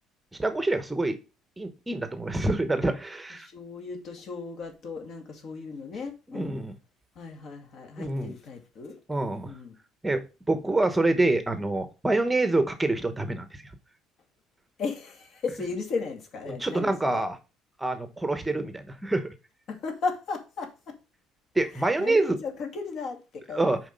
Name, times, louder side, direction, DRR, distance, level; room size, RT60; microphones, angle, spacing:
voice 1, 0.4-1.2 1.6-3.5 6.3-6.8 8.0-8.3 9.1-9.5 10.0-13.4 16.5-17.4 17.8-19.3 21.5-22.4 23.5-23.8, right 2 dB, 10° right, 1.0 m, -26 dB
voice 2, 3.4-6.6 7.2-9.0 9.4-9.7 14.8-17.2 19.7-21.0 21.7-23.6, left 4 dB, 50° left, 2.4 m, -35 dB
7.1 x 4.9 x 5.2 m
cardioid pair, 140°, 0 cm